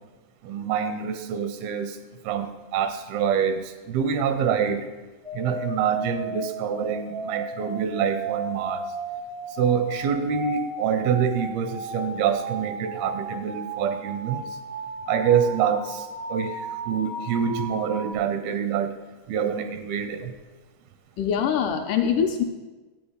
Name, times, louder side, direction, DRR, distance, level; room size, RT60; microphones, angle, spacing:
voice 1, 0.4-2.0 2.2-4.9 5.3-8.9 9.6-14.4 15.1-19.0 19.3-20.4, right 7 dB, 90° right, 9 dB, 2.7 m, -26 dB
sound 1, 5.2-18.1, right 2 dB, 75° right, 0.5 m, -35 dB
voice 2, 21.2-22.4, left 7 dB, 80° left, 3 dB, 2.0 m, -23 dB
11.5 x 8.7 x 5.0 m, 1.2 s
omnidirectional pair, 4.2 m